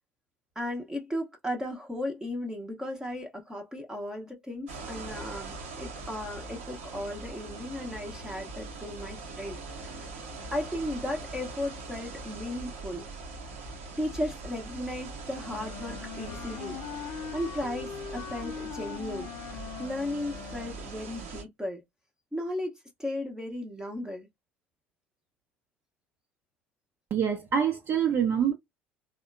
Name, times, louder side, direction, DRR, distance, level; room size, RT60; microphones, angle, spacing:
voice 1, 0.5-10.1 10.5-13.1 14.0-21.8 22.3-24.3, left 1 dB, 10° right, 0.8 m, -36 dB
sound 1, 4.7-21.4, right 3 dB, 70° right, 1.1 m, -42 dB
Wind instrument woodwind instrument, 15.4-21.0, left 9 dB, 50° left, 0.4 m, -41 dB
voice 2, 27.1-28.5, right 8 dB, 40° right, 0.7 m, -25 dB
3.5 x 2.2 x 2.5 m
figure-of-eight pair, 65°, 7 cm